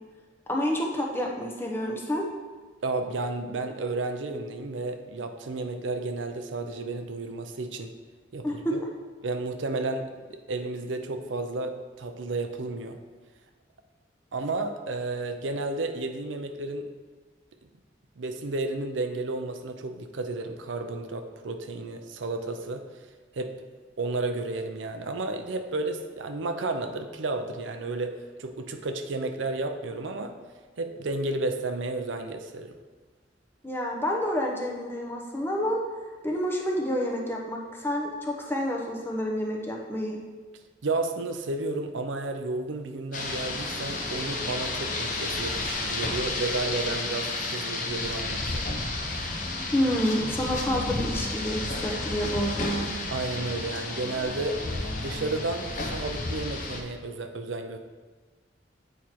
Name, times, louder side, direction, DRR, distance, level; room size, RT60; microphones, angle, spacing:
voice 1, 0.5-2.3 8.4-8.7 33.6-35.8 36.2-40.2 49.7-52.9, equal, 10° left, -1 dB, 0.8 m, -28 dB
voice 2, 2.8-7.9 8.3-8.8 9.2-13.0 14.3-16.9 18.2-22.9 23.3-23.6 24.0-30.4 30.8-32.8 40.8-48.7 53.1-54.6 55.0-57.8, right 2 dB, 90° right, 7 dB, 0.6 m, -32 dB
Rain, 43.1-56.8, left 2 dB, 45° left, 0.8 m, -32 dB
8.3 x 4.4 x 4.3 m, 1.4 s
head